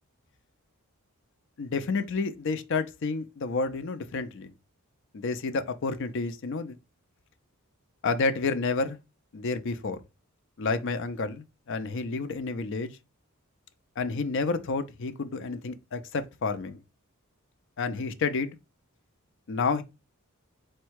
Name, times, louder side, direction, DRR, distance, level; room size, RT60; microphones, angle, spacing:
voice 1, 1.6-4.5 5.1-6.8 8.0-9.0 9.3-10.0 10.6-13.0 14.0-16.8 17.8-18.6 19.5-19.8, left 4 dB, 60° left, 0.5 m, -30 dB
4.3 x 2.2 x 4.5 m
head